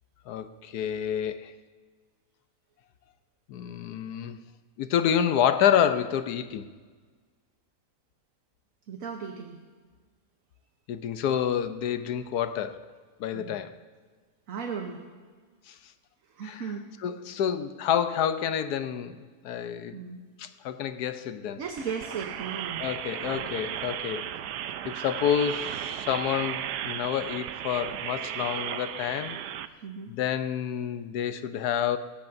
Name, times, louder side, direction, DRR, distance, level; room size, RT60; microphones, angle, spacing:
voice 1, 0.3-1.5 3.5-4.4 4.8-6.7 10.9-12.9 13.2-13.8 15.7-15.8 16.4-16.6 17.0-20.0 20.4-21.6 22.8-24.3 24.8-29.4 30.1-32.0, left 9 dB, 75° left, 11 dB, 1.2 m, -28 dB
voice 2, 8.9-9.6 13.3-13.6 14.5-15.1 16.3-16.9 19.9-20.2 21.6-22.9 29.8-30.1, right 6 dB, 60° right, 3 dB, 1.3 m, -36 dB
sound 1, 21.7-29.7, right 10 dB, 85° right, 1.2 m, -35 dB
19.0 x 17.0 x 2.6 m, 1.5 s
omnidirectional pair, 1.7 m